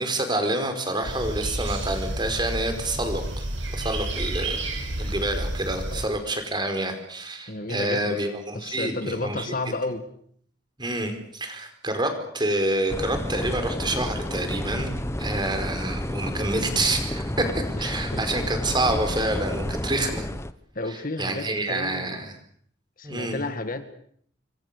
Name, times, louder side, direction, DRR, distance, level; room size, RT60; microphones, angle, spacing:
voice 1, 0.0-3.4 3.7-4.6 5.0-9.5 10.8-17.2 17.6-20.3 21.2-22.4 23.0-23.4, right 1 dB, 25° right, 7 dB, 4.9 m, -28 dB
sound 1, 1.0-6.1, right 1 dB, 75° right, 7.6 m, -30 dB
voice 2, 7.5-8.2 8.5-10.0 17.8-18.2 20.8-22.1 23.0-23.8, left 2 dB, 45° left, 9 dB, 2.0 m, -32 dB
sound 2, 12.9-20.5, left 1 dB, 15° left, 1.0 m, -30 dB
28.0 x 24.0 x 6.9 m, 0.63 s
head